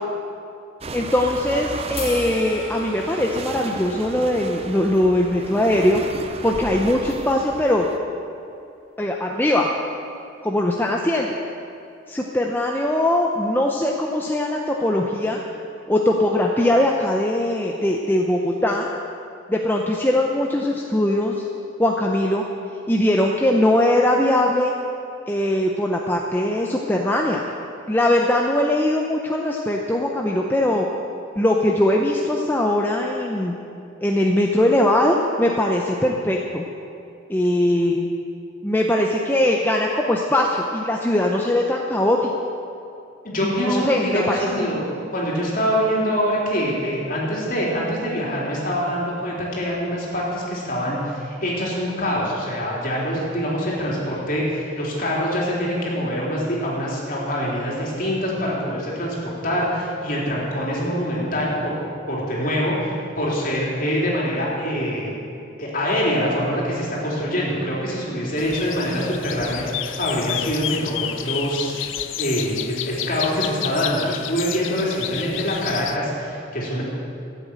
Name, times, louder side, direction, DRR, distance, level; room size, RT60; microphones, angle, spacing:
sound 1, 0.8-8.0, right 3 dB, 30° right, 0.6 m, -34 dB
voice 1, 0.9-7.9 9.0-9.7 10.4-11.4 12.1-15.4 15.9-18.9 19.5-21.4 21.8-22.4 22.9-24.7 25.3-27.4 27.9-30.9 31.4-33.5 34.0-36.6 37.3-38.1 38.6-42.3 43.4-44.5, left 1 dB, 10° left, 0 dB, 0.7 m, -21 dB
sound 2, 2.0-8.2, left 2 dB, 25° left, 2.7 m, -41 dB
voice 2, 43.2-44.9 45.1-61.8 62.1-65.1 65.6-71.8 72.2-76.8, equal, 45° left, -4 dB, 3.6 m, -24 dB
sound 3, 68.4-76.0, left 11 dB, 75° left, 0.6 m, -30 dB
14.0 x 8.3 x 8.8 m, 2.6 s
head